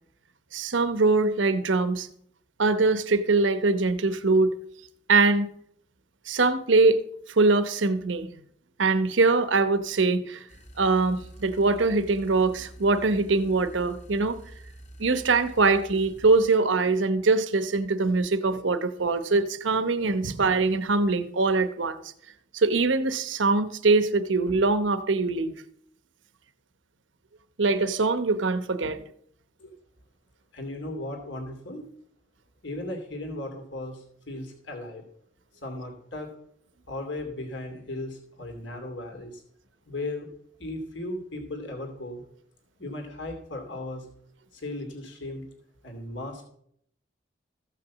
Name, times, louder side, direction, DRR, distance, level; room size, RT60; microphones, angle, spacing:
voice 1, 0.5-2.1 2.6-4.6 5.1-5.5 6.3-7.0 7.3-8.3 8.8-10.4 10.8-14.4 15.0-22.0 22.5-25.6 27.6-29.0, right 3 dB, 80° right, 12 dB, 0.9 m, -23 dB
sound 1, 10.5-16.5, right 1 dB, 35° left, 1.6 m, -47 dB
voice 2, 30.5-31.9 32.6-35.0 35.6-36.3 36.9-39.4 39.9-40.3 40.6-42.2 42.8-44.1 44.5-45.5 45.8-46.5, left 1 dB, 70° left, 4 dB, 2.5 m, -36 dB
14.5 x 5.9 x 7.2 m, 0.69 s
head